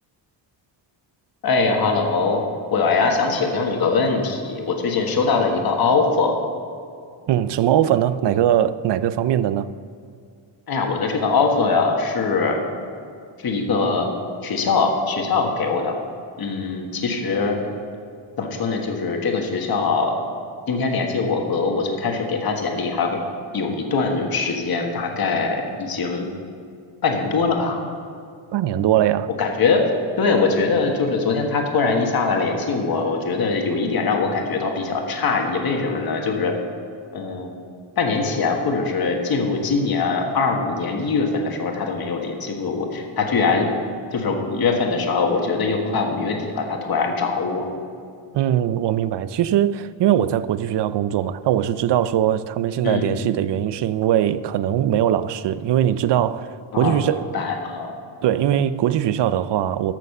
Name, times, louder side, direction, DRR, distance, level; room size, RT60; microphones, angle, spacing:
voice 1, 1.4-2.4 2.7-6.4 10.7-12.6 13.4-14.1 14.4-16.0 16.4-17.6 18.4-20.1 20.7-23.2 23.5-26.3 27.0-27.8 29.4-29.8 30.2-36.6 37.1-37.5 38.0-43.7 44.1-47.7 52.8-53.2 56.7-57.9, left 4 dB, 50° left, 1.5 m, -22 dB
voice 2, 7.3-9.7 28.5-29.3 48.3-56.5 56.8-57.3 58.2-59.9, right 11 dB, 65° right, 0.5 m, -21 dB
14.0 x 6.6 x 6.6 m
wide cardioid pair, 175°, 47 cm